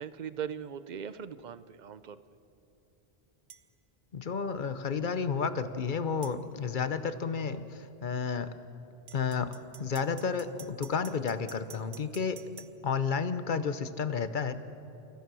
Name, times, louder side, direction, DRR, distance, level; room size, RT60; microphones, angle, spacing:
voice 1, 0.0-2.2, right 8 dB, 50° right, 14 dB, 0.7 m, -39 dB
sound 1, 3.5-3.7 6.2-6.4 9.1-12.7, right 8 dB, 80° right, 1.1 m, -50 dB
voice 2, 4.1-8.5 9.1-9.5 9.8-12.4 12.8-14.5, left 5 dB, 55° left, 12 dB, 1.0 m, -31 dB
29.5 x 14.5 x 6.2 m, 2.8 s
omnidirectional pair, 1.0 m